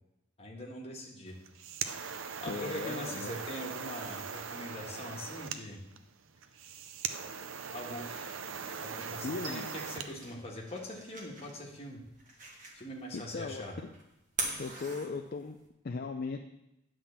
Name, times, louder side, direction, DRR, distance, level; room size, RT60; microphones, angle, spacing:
voice 1, 0.4-1.4 2.4-5.8 7.7-8.4 8.8-12.0 12.7-13.8, left 1 dB, 30° left, -1 dB, 1.5 m, -42 dB
sound 1, 1.3-10.1, right 6 dB, 85° right, 0.6 m, -40 dB
voice 2, 2.5-3.3 9.2-9.7 13.1-13.6 14.6-15.6 15.8-16.4, left 4 dB, 50° left, 5 dB, 0.4 m, -37 dB
Chink clink, 6.5-12.0, right 3 dB, 65° right, 1.7 m, -56 dB
sound 2, 9.1-15.7, right 2 dB, 40° right, 1.7 m, -44 dB
10.0 x 3.8 x 7.0 m, 0.89 s
head